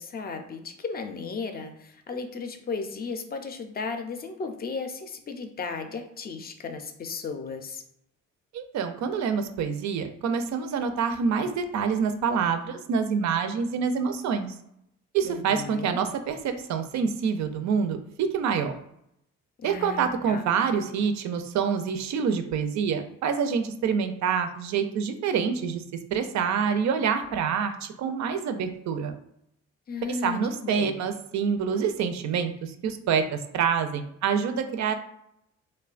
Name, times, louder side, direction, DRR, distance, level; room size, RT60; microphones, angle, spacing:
voice 1, 0.0-7.8 15.2-16.0 19.6-20.5 29.9-30.4 30.6-31.0, left 4 dB, 30° left, 6 dB, 0.4 m, -35 dB
voice 2, 8.5-14.5 15.1-18.7 19.6-25.8 26.1-29.1 30.1-34.9, right 6 dB, 65° right, 8 dB, 0.4 m, -27 dB
3.0 x 2.2 x 2.4 m, 0.76 s
cardioid pair, 90°, 30 cm